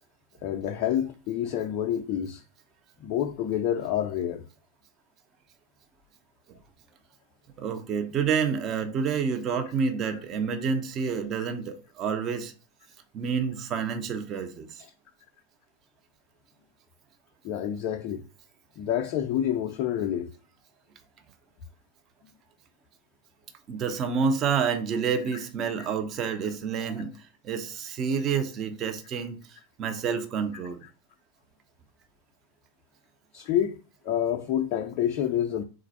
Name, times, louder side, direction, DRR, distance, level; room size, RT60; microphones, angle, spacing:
voice 1, 0.4-2.4 3.0-4.4 17.4-18.2 18.8-20.3 33.3-33.8 34.0-35.6, left 10 dB, 40° left, 0.4 m, -28 dB
voice 2, 7.6-12.5 13.1-14.8 23.7-27.1 27.4-30.8, right 6 dB, 30° right, 0.6 m, -28 dB
3.9 x 2.4 x 4.4 m
figure-of-eight pair, 90°, 0 cm